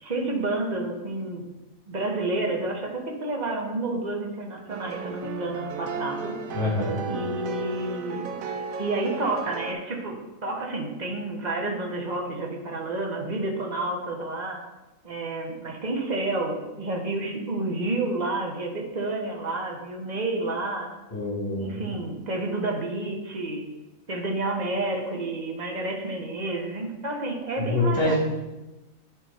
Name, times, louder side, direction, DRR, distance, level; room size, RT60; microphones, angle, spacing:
voice 1, 0.0-1.4 1.9-6.3 7.1-8.3 8.8-14.6 15.0-20.9 21.5-23.7 24.1-28.1, right 2 dB, 35° right, 1 dB, 1.1 m, -30 dB
sound 1, 4.7-9.7, right 5 dB, 80° right, 1.1 m, -34 dB
voice 2, 6.5-6.9 21.1-21.9 27.6-28.1, left 2 dB, 20° left, -7 dB, 2.9 m, -25 dB
10.0 x 3.9 x 4.3 m, 1.1 s
omnidirectional pair, 1.4 m